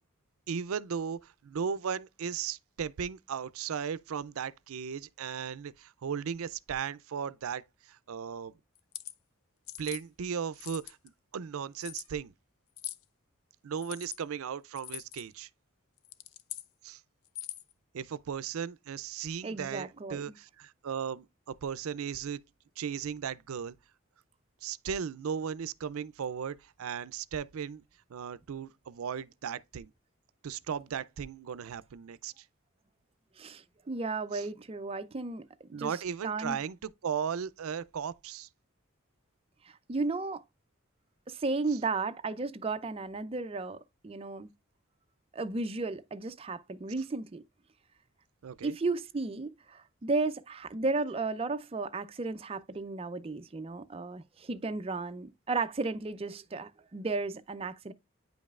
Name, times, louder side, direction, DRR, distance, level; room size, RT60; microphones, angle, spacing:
voice 1, 0.5-8.5 9.8-11.0 11.3-12.3 13.6-15.5 16.8-17.0 17.9-22.4 22.8-23.7 24.6-27.8 28.1-29.9 30.4-32.4 34.3-34.5 35.7-38.5 41.7-41.8 48.4-48.7, right 7 dB, 85° right, 0.4 m, -36 dB
sound 1, 8.7-9.1 9.7-10.0 10.5-11.1 11.8-12.1 12.8-13.0 13.8-14.2 14.8-15.2 16.0-16.7 17.2-17.7, left 13 dB, 85° left, 0.5 m, -42 dB
voice 2, 19.4-20.4 33.4-36.0 36.2-36.6 39.6-40.4 41.3-43.8 44.0-44.5 45.3-47.4 48.6-57.9, right 3 dB, 25° right, 0.4 m, -34 dB
9.2 x 5.2 x 2.4 m
head